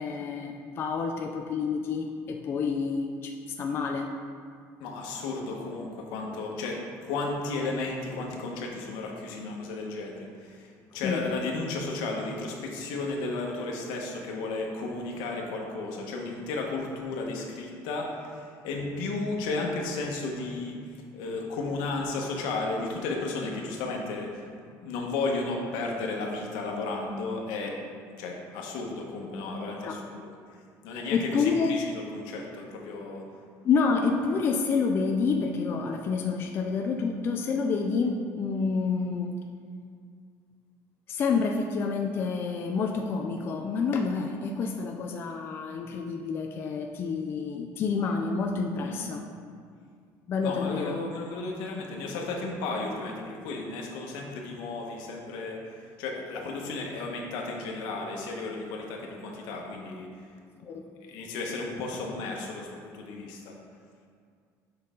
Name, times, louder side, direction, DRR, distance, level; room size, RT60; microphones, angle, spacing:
voice 1, 0.0-3.3 3.6-4.1 11.0-11.2 29.8-30.0 31.1-31.7 33.6-39.3 41.1-49.2 50.3-51.0 60.6-60.8, left 5 dB, 30° left, 2 dB, 0.4 m, -28 dB
voice 2, 4.8-20.8 21.1-24.5 24.8-27.8 28.2-30.3 30.8-33.2 48.8-49.2 50.4-60.2 60.7-63.6, left 3 dB, 80° left, 0 dB, 1.3 m, -34 dB
7.8 x 5.5 x 3.8 m, 2.1 s
cardioid pair, 170°, 7 cm